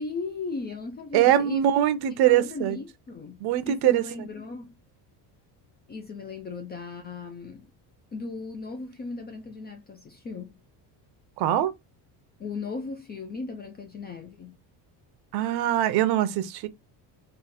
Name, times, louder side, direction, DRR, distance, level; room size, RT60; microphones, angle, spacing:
voice 1, 0.0-1.7 2.2-4.7 5.9-7.7 8.1-10.6 12.4-14.6, left 3 dB, 25° left, 0.4 m, -37 dB
voice 2, 1.1-2.8 3.4-4.1 11.4-11.7 15.3-16.7, right 12 dB, 65° right, 0.7 m, -22 dB
3.7 x 2.5 x 4.1 m
cardioid pair, 160°, 42 cm